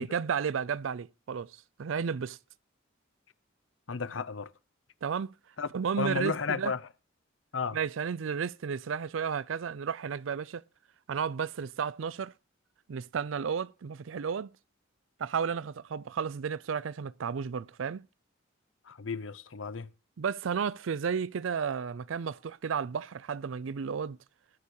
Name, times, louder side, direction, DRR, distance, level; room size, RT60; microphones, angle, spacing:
voice 1, 0.0-2.4 5.0-5.3 5.7-6.7 7.7-10.6 11.1-12.3 12.9-14.5 15.2-18.0 20.2-24.2, right 6 dB, 85° right, 0.4 m, -33 dB
voice 2, 3.9-4.5 5.6-5.7 6.0-6.8 7.5-7.8 18.9-19.9, left 5 dB, 80° left, 0.7 m, -33 dB
19.5 x 6.8 x 3.1 m
head